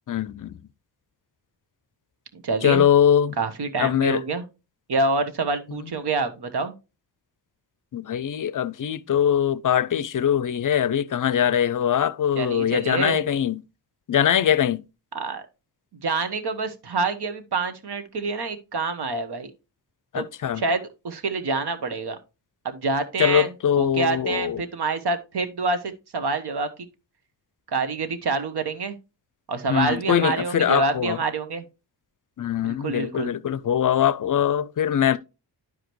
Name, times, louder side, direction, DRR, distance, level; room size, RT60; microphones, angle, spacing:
voice 1, 0.1-0.6 2.6-3.4 3.8-4.2 5.7-5.8 7.9-13.6 14.1-14.8 20.1-20.6 23.2-24.6 29.7-31.2 32.4-35.2, left 9 dB, 50° left, 0.5 m, -22 dB
voice 2, 2.3-2.8 3.4-4.4 4.9-6.7 12.4-13.2 15.1-15.4 16.0-19.5 20.1-20.3 20.6-22.2 22.6-25.8 26.1-26.7 27.7-28.9 29.5-31.6 32.6-33.3, right 3 dB, 65° right, 1.3 m, -26 dB
10.5 x 5.0 x 3.1 m
cardioid pair, 80°, 43 cm